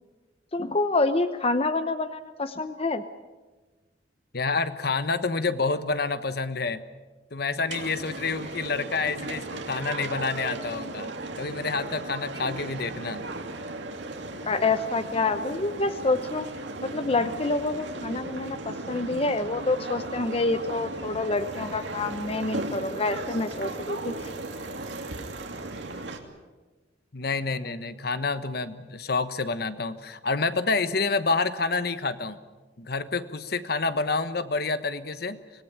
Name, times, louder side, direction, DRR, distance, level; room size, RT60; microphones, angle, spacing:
voice 1, 0.5-3.0 14.4-16.5 16.8-24.3, left 3 dB, 35° left, 11 dB, 0.8 m, -27 dB
voice 2, 4.3-6.8 7.3-13.2 27.1-32.4 32.8-35.4, left 4 dB, 60° left, 12 dB, 1.2 m, -28 dB
sound 1, 7.7-26.2, right 2 dB, 85° right, 2.8 m, -36 dB
25.5 x 18.5 x 9.0 m, 1.3 s
head